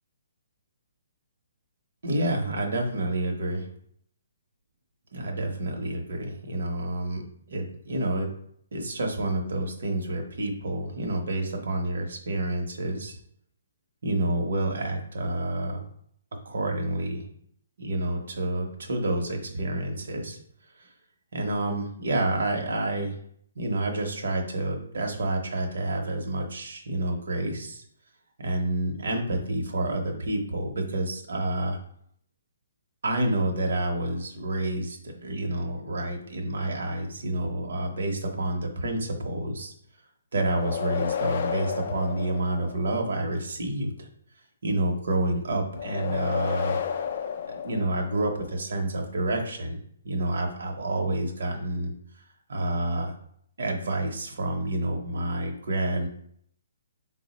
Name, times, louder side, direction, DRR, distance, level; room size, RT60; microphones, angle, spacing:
voice 1, 2.0-3.7 5.1-8.3 8.7-13.2 14.0-15.8 16.4-17.2 17.8-20.4 20.8-20.9 21.3-23.2 23.6-27.8 28.4-31.8 33.0-39.7 40.3-44.1 44.6-46.8 47.5-49.8 50.0-51.9 52.5-53.1 53.6-56.1, right 1 dB, 70° right, 2 dB, 0.7 m, -29 dB
sound 1, 40.4-43.1 45.7-48.4, left 7 dB, 45° left, 0.3 m, -31 dB
4.4 x 2.0 x 4.0 m, 0.67 s
hypercardioid pair, 170°, 0 cm